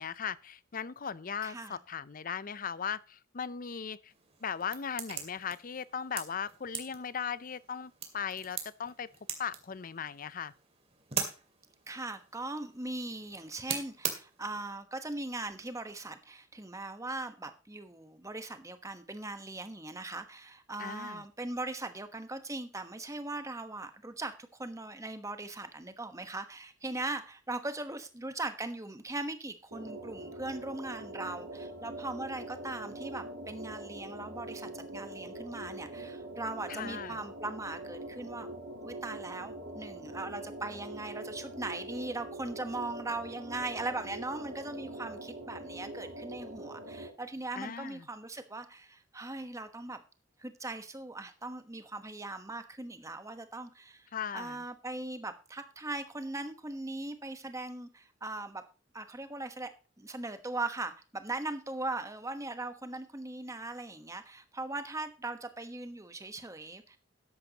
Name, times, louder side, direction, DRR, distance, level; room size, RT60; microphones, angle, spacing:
voice 1, 0.0-4.1 4.4-9.1 9.4-10.5 20.8-21.2 36.7-37.2 47.6-48.1 54.1-54.6, left 7 dB, 45° left, 0.5 m, -38 dB
voice 2, 1.4-1.8 11.9-38.5 38.8-50.0 50.4-54.1 54.3-58.6 58.9-59.7 60.0-67.0, right 2 dB, 15° right, 1.2 m, -39 dB
sound 1, 4.1-14.7, right 6 dB, 30° right, 2.3 m, -42 dB
sound 2, 29.7-47.1, right 1 dB, 75° right, 4.2 m, -43 dB
13.5 x 10.5 x 2.9 m
head